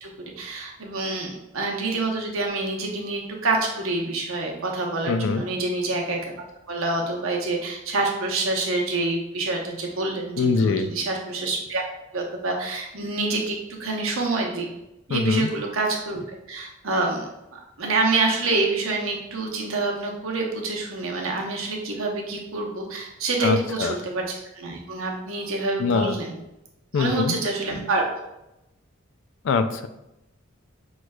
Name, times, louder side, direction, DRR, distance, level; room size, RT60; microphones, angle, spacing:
voice 1, 0.0-6.3 6.7-11.8 12.1-14.7 15.1-16.2 16.5-24.2 24.5-26.3 26.9-28.0, right 3 dB, 85° right, 0 dB, 0.9 m, -27 dB
voice 2, 5.0-5.4 10.4-10.9 15.1-15.5 23.4-23.9 25.8-26.1 26.9-27.4 29.4-29.9, left 4 dB, 65° left, 10 dB, 0.3 m, -23 dB
6.0 x 3.2 x 2.3 m, 0.90 s
head